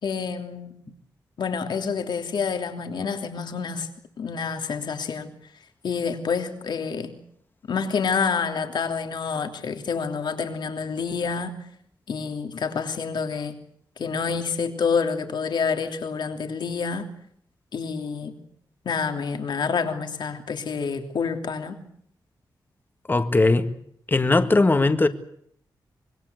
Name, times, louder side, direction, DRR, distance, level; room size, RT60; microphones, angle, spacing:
voice 1, 0.0-0.9 1.4-3.9 4.2-5.3 5.8-7.1 7.7-11.7 12.1-13.6 14.0-17.1 17.7-18.4 18.8-21.8, left 5 dB, 70° left, 3.2 m, -28 dB
voice 2, 23.1-23.7 24.1-25.1, left 2 dB, 25° left, 1.8 m, -19 dB
25.5 x 22.0 x 8.1 m
wide cardioid pair, 100°, 8 cm